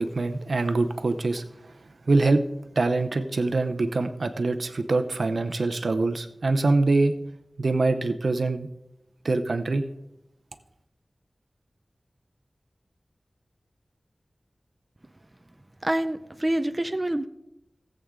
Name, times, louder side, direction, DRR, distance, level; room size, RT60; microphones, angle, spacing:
voice 1, 0.0-1.4 2.1-2.4 2.8-7.2 7.6-8.7 9.2-9.8, right 3 dB, 75° right, 9 dB, 0.7 m, -24 dB
voice 2, 15.8-17.3, right 1 dB, 25° right, 9 dB, 0.6 m, -26 dB
17.5 x 7.8 x 3.8 m, 0.89 s
wide cardioid pair, 75°, 0 cm